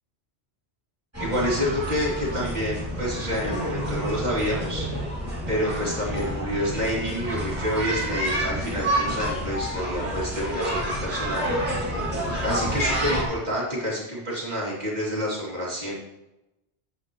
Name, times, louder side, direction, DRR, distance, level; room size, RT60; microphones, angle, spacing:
sound 1, 1.1-13.2, right 1 dB, 15° right, 2.7 m, -29 dB
voice 1, 1.2-4.9 5.5-11.9 12.4-16.0, equal, 35° right, -6 dB, 3.1 m, -28 dB
9.9 x 8.4 x 3.1 m, 0.97 s
omnidirectional pair, 1.2 m